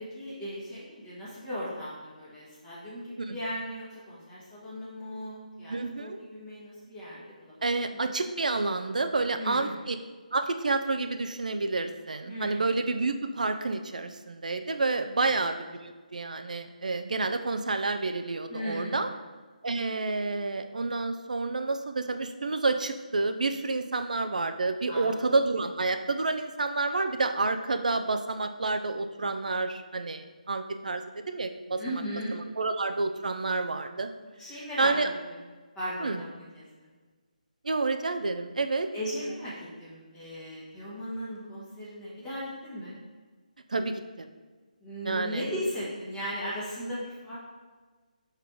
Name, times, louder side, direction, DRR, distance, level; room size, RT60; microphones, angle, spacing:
voice 1, 0.0-7.5 7.9-8.1 9.3-9.8 12.3-12.7 15.2-15.5 18.5-19.1 24.9-25.2 31.8-32.4 34.4-34.9 35.7-36.9 38.9-43.0 44.8-47.4, equal, 10° left, -9 dB, 1.4 m, -37 dB
voice 2, 5.7-6.2 7.6-10.0 10.3-19.1 19.6-31.8 32.3-34.1 34.8-35.1 36.0-36.2 37.6-38.9 43.7-44.3 45.0-45.5, right 3 dB, 60° right, 8 dB, 0.4 m, -29 dB
5.5 x 4.0 x 4.5 m, 1.4 s
figure-of-eight pair, 150°, 5 cm